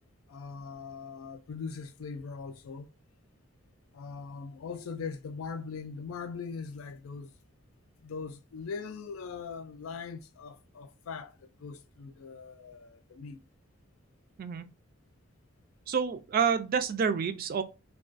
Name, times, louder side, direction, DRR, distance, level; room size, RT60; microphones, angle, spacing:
voice 1, 0.3-2.9 3.9-7.3 8.0-13.4, left 5 dB, 85° left, 0.4 m, -41 dB
voice 2, 15.9-17.6, right 6 dB, 45° right, 0.3 m, -28 dB
2.3 x 2.2 x 2.4 m
head